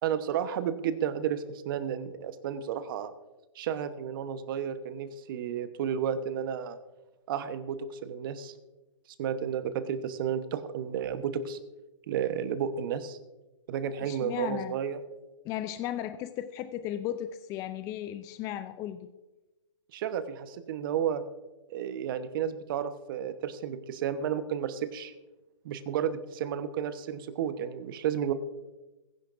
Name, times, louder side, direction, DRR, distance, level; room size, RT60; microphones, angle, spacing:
voice 1, 0.0-3.1 3.5-6.8 7.3-8.5 9.2-11.6 12.1-13.2 13.7-15.0 19.9-21.2 21.7-25.1 25.6-28.3, right 8 dB, 45° right, 11 dB, 1.1 m, -32 dB
voice 2, 14.0-14.8 15.4-19.0, left 12 dB, 20° left, 10 dB, 0.5 m, -35 dB
21.5 x 10.5 x 2.6 m, 1.1 s
hypercardioid pair, 135°, 16 cm